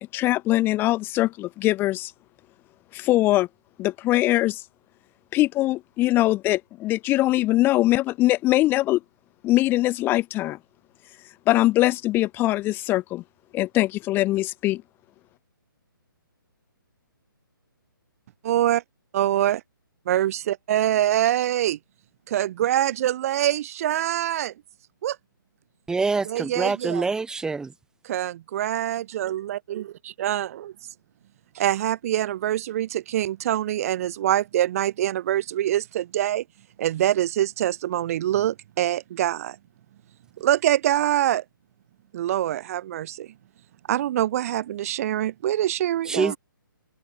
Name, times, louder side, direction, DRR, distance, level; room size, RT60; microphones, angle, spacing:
voice 1, 0.1-2.1 2.9-3.5 3.8-4.6 5.3-9.0 9.4-10.6 11.5-13.2 13.5-14.8, left 17 dB, 20° left, 0.9 m, -22 dB
voice 2, 18.4-18.8 19.1-19.6 20.1-21.8 22.3-24.5 25.0-25.2 26.2-27.1 28.0-30.7 31.5-36.4 36.8-39.6 40.4-41.4 42.1-43.3 43.9-46.3, right 12 dB, 40° right, 3.1 m, -24 dB
voice 3, 25.9-27.7 46.1-46.4, right 4 dB, 5° right, 1.3 m, -25 dB
figure-of-eight pair, 140°, 12 cm